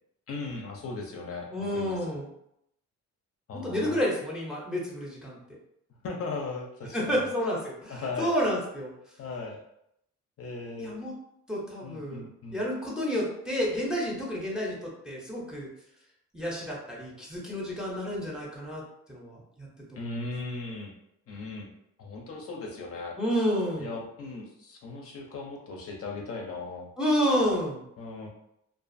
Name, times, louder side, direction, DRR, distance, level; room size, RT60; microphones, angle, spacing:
voice 1, 0.3-2.0 3.5-4.0 6.0-7.3 7.9-8.3 9.2-9.6 10.4-10.9 11.8-12.6 20.0-20.9 21.3-21.7 22.0-23.2 23.8-26.9 28.0-28.3, left 3 dB, 50° left, 0 dB, 0.5 m, -37 dB
voice 2, 1.5-2.3 3.5-5.4 6.9-8.9 10.8-11.1 11.5-12.2 12.5-15.7 16.3-18.8 19.1-20.1 23.2-23.9 27.0-27.8, equal, 5° right, -4 dB, 0.6 m, -30 dB
2.4 x 2.4 x 2.5 m, 0.77 s
cardioid pair, 125°, 29 cm